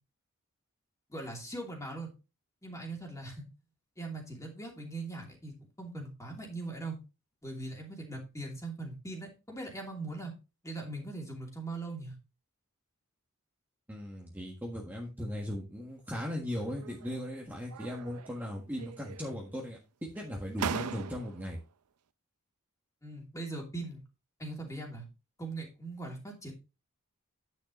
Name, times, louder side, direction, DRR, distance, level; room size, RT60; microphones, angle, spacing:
voice 1, 1.1-2.1 2.6-3.5 4.0-7.0 7.4-10.3 10.6-12.2 23.0-24.0 24.4-25.0 25.4-26.5, right 2 dB, 15° left, 0 dB, 2.8 m, -40 dB
voice 2, 13.9-19.8 20.1-21.6, equal, 10° right, -2 dB, 1.5 m, -38 dB
Door Slam, 16.7-17.3 17.7-18.5 18.8-19.5 20.2-20.3 20.6-21.5, right 7 dB, 80° right, 0.5 m, -39 dB
9.8 x 6.6 x 3.1 m, 0.29 s
head